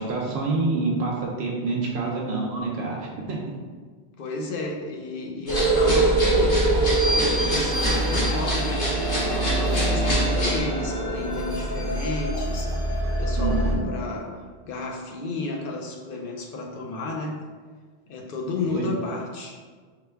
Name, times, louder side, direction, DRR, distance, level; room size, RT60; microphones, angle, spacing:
voice 1, 0.0-3.4 13.4-13.9 18.7-18.9, right 3 dB, 75° right, -2 dB, 0.8 m, -27 dB
voice 2, 4.2-12.7 13.2-14.3 14.6-17.4 18.1-19.6, left 2 dB, 60° left, 1 dB, 0.7 m, -32 dB
sound 1, 5.5-10.6, left 1 dB, 75° left, 1.5 m, -29 dB
sound 2, 5.5-13.7, right 2 dB, 30° right, 0.5 m, -24 dB
5.0 x 2.2 x 3.3 m, 1.5 s
omnidirectional pair, 1.1 m